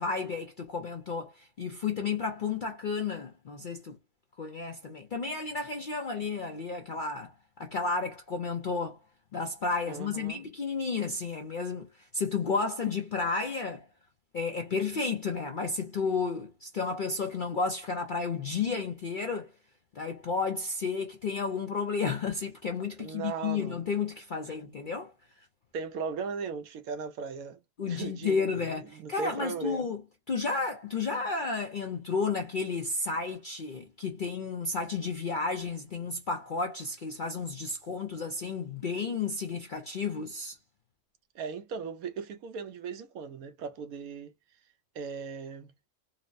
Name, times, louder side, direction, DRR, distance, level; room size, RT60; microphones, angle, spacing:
voice 1, 0.0-4.0 4.4-9.0 9.3-13.9 14.3-19.5 19.9-25.1 27.8-30.0 30.3-40.6, left 4 dB, 60° left, 0.5 m, -32 dB
voice 2, 9.9-10.4 23.0-23.8 25.7-27.6 27.9-29.9 41.3-44.3 44.9-45.7, right 5 dB, 80° right, 1.1 m, -37 dB
4.1 x 2.0 x 2.6 m
omnidirectional pair, 1.5 m